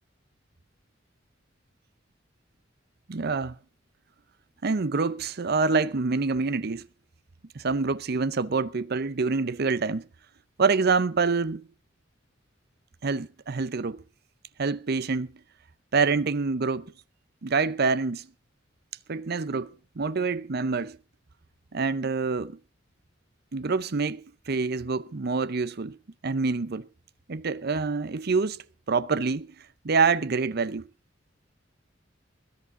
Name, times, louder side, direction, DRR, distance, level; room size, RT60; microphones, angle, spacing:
voice 1, 3.1-3.6 4.6-6.8 7.5-10.1 10.6-11.6 13.0-14.0 14.6-15.3 15.9-16.9 17.4-18.3 19.1-21.0 21.7-22.6 23.5-26.0 26.2-26.9 27.3-29.5 29.8-30.8, right 4 dB, 55° right, 0.7 m, -26 dB
21.0 x 11.0 x 3.8 m
head